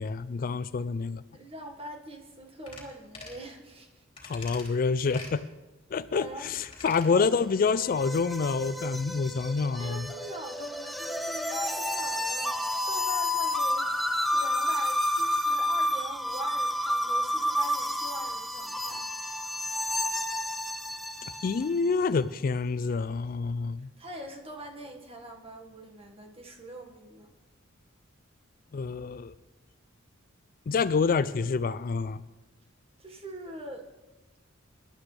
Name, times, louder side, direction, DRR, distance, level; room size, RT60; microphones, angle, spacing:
voice 1, 0.0-1.2 4.2-5.4 5.9-10.0 21.4-23.9 28.7-29.3 30.7-32.2, left 5 dB, 45° left, 15 dB, 0.4 m, -27 dB
voice 2, 1.3-4.0 6.1-6.5 7.1-7.3 9.8-19.0 24.0-27.3 33.0-33.8, right 1 dB, 30° right, 2 dB, 1.7 m, -43 dB
sound 1, 2.7-2.9 3.1-3.4 4.2-4.7 5.1-5.4 6.6-7.1 7.4-7.5, left 3 dB, 30° left, 3.3 m, -44 dB
sound 2, 7.2-21.8, left 1 dB, ahead, 0.6 m, -30 dB
24.0 x 11.5 x 3.4 m, 1.1 s
head